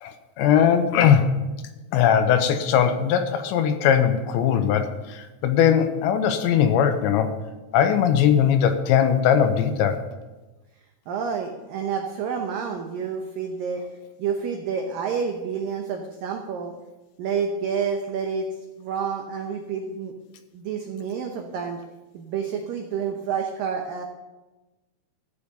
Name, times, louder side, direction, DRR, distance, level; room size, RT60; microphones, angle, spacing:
voice 1, 0.0-1.3 1.9-7.3 7.7-10.0, left 8 dB, 80° left, 8 dB, 3.0 m, -20 dB
voice 2, 11.1-13.8 14.2-16.7 17.2-18.5 18.8-20.1 20.5-21.8 22.1-24.0, right 6 dB, 85° right, 2 dB, 2.0 m, -29 dB
14.0 x 6.6 x 6.9 m, 1.1 s
omnidirectional pair, 5.3 m